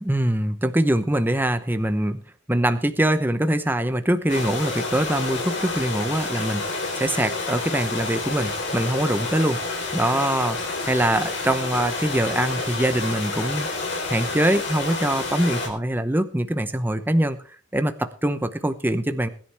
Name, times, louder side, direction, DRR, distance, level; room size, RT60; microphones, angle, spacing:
voice 1, 0.0-2.2 2.5-9.6 9.9-10.6 10.8-13.7 14.1-17.4 17.7-19.3, right 1 dB, 10° right, 9 dB, 0.8 m, -23 dB
sound 1, 4.3-15.7, left 3 dB, 65° left, 4.0 m, -29 dB
21.0 x 10.5 x 3.5 m, 0.41 s
head